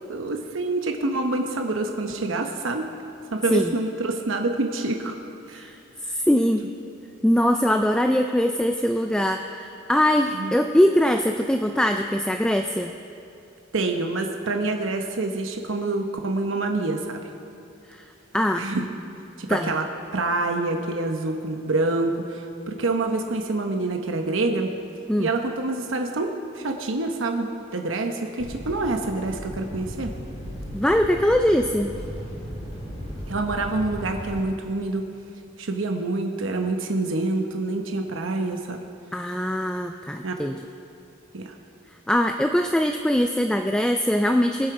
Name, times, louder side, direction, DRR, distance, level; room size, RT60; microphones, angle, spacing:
voice 1, 0.1-2.9 3.3-5.1 5.5-5.7 10.4-10.5 13.7-17.2 18.6-18.8 19.4-19.9 20.1-24.7 25.2-30.1 33.3-35.1 35.6-38.8 40.2-40.3 41.3-41.5, right 2 dB, 85° right, 4 dB, 0.9 m, -26 dB
voice 2, 6.0-6.7 7.2-12.9 17.9-18.0 18.3-18.7 19.5-19.7 25.1-25.3 30.7-31.9 39.1-40.6 42.1-44.7, equal, 5° left, 5 dB, 0.3 m, -22 dB
sound 1, 28.4-34.4, equal, 30° left, 2.9 m, -36 dB
21.5 x 8.0 x 4.8 m, 2.7 s
head